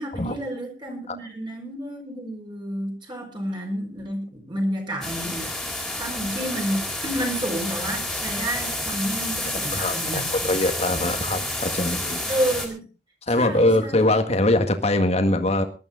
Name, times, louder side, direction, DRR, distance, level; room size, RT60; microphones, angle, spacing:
voice 1, 0.0-5.5 5.9-10.3 10.9-11.1 12.3-12.9 13.4-14.0, equal, 25° right, 2 dB, 5.0 m, -30 dB
sound 1, 5.0-12.7, left 1 dB, ahead, 3.7 m, -29 dB
voice 2, 9.8-12.2 13.3-15.6, left 1 dB, 35° left, 7 dB, 1.7 m, -22 dB
19.5 x 12.5 x 3.9 m, 0.34 s
head